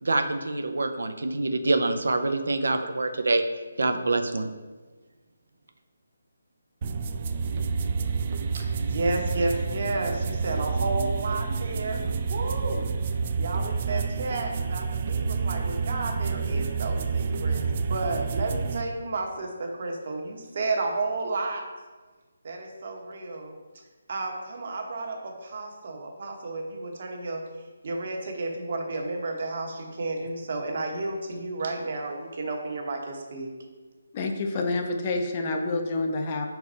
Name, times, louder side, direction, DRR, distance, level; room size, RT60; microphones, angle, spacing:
voice 1, 0.0-3.4 3.8-4.5, right 2 dB, 85° right, 6 dB, 0.6 m, -25 dB
sound 1, 6.8-18.8, right 5 dB, 30° right, 0.3 m, -29 dB
voice 2, 8.5-12.0 12.3-12.8 13.4-21.6 22.4-23.5 24.1-27.4 27.8-33.5, right 2 dB, 50° right, 2 dB, 1.1 m, -32 dB
voice 3, 34.1-36.5, left 2 dB, 25° left, 3 dB, 0.5 m, -28 dB
5.1 x 4.6 x 4.1 m, 1.3 s
hypercardioid pair, 165°, 0 cm